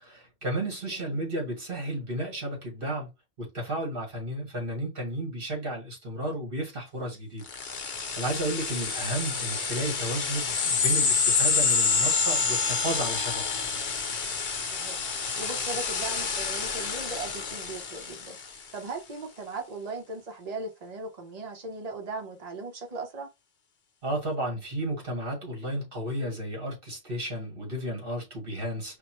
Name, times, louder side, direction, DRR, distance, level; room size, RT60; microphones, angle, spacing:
voice 1, 0.0-3.1 3.4-13.4 24.0-29.0, right 1 dB, 55° right, 2.0 m, -33 dB
sound 1, 7.5-18.6, left 5 dB, 65° left, 1.0 m, -28 dB
voice 2, 14.7-18.4 18.7-23.3, right 3 dB, 40° right, 1.0 m, -38 dB
5.0 x 2.1 x 3.0 m
omnidirectional pair, 1.1 m